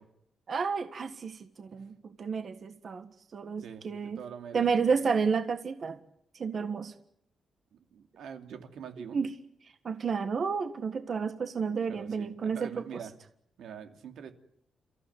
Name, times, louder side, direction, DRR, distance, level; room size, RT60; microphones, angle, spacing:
voice 1, 0.5-3.1 3.3-4.2 4.5-6.0 6.4-6.9 9.1-9.3 9.8-13.0, right 5 dB, 45° right, 8 dB, 1.5 m, -31 dB
voice 2, 3.6-4.9 7.9-9.2 11.9-13.1 13.6-14.3, right 7 dB, 90° right, 6 dB, 2.8 m, -44 dB
30.0 x 15.0 x 9.7 m, 0.74 s
wide cardioid pair, 150°, 0 cm